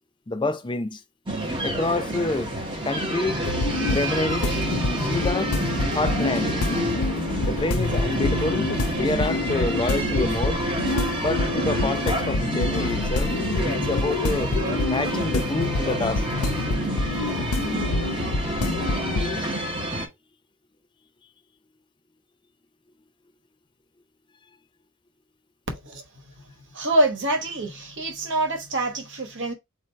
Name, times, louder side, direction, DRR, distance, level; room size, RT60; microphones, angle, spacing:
voice 1, 0.3-1.0 1.6-2.5 2.8-3.4 3.9-5.5 5.9-6.6 7.4-10.6 11.2-13.3 13.6-14.5 14.9-16.3 16.7-16.8, left 2 dB, 20° left, 0.5 m, -27 dB
sound 1, 1.3-20.1, right 1 dB, 20° right, 0.9 m, -28 dB
sound 2, 3.4-19.4, left 3 dB, 85° left, 0.6 m, -27 dB
voice 2, 25.7-26.0 26.7-29.5, right 1 dB, 55° right, 1.0 m, -25 dB
4.2 x 2.6 x 4.4 m
head